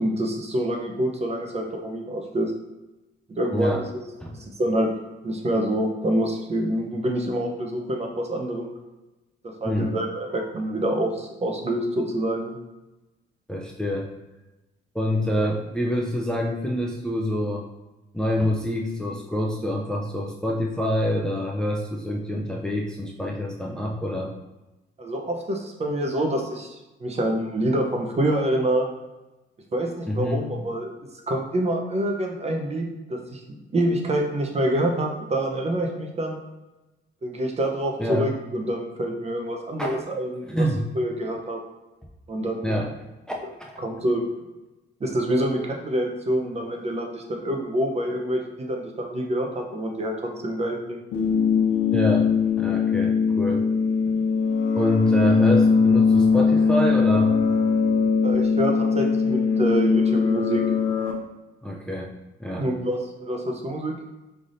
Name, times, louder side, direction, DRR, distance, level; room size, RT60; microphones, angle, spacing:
voice 1, 0.0-2.5 3.3-4.0 4.4-4.9 5.2-8.7 9.4-12.5 25.0-28.9 29.7-30.9 31.3-33.4 33.7-36.4 37.2-40.7 40.9-41.6 42.3-42.7 43.8-44.2 45.0-48.4 48.7-51.0 58.2-60.6 62.6-64.0, right 1 dB, 30° right, 2 dB, 0.8 m, -26 dB
voice 2, 3.5-3.8 4.2-4.3 9.6-9.9 13.5-14.1 14.9-17.7 18.1-24.3 30.1-30.4 38.0-38.3 39.8-40.0 40.4-40.8 42.6-42.9 43.3-43.7 51.9-52.3 52.6-53.6 54.7-57.3 61.6-62.1 62.4-62.7, left 1 dB, 5° left, -1 dB, 0.5 m, -26 dB
sound 1, 51.1-61.1, left 5 dB, 90° left, 0.7 m, -21 dB
5.3 x 3.4 x 2.6 m, 1.1 s
cardioid pair, 90°, 20 cm